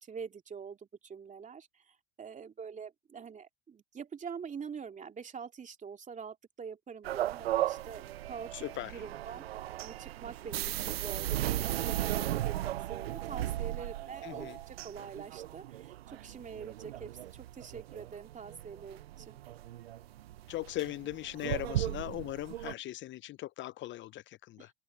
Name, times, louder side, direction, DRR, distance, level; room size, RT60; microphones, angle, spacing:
voice 1, 0.0-9.4 9.8-19.4 24.6-24.7, right 6 dB, 25° right, 2.7 m, -45 dB
sound 1, 7.0-22.7, right 14 dB, 85° right, 0.7 m, -36 dB
voice 2, 8.5-8.9 14.2-14.6 20.5-24.7, left 15 dB, 40° left, 0.7 m, -39 dB
hypercardioid pair, 90°, 30 cm